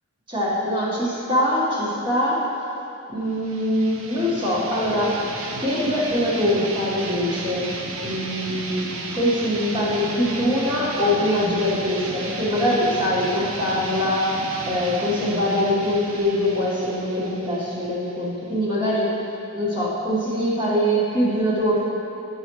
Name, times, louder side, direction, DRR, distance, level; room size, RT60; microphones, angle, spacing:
voice 1, 0.3-2.5 3.1-5.2 5.6-7.7 8.0-19.1 19.5-21.8, left 1 dB, 20° right, -7 dB, 1.5 m, -23 dB
sound 1, 3.3-18.7, right 3 dB, 70° right, 0.6 m, -34 dB
9.0 x 5.7 x 3.1 m, 2.9 s
head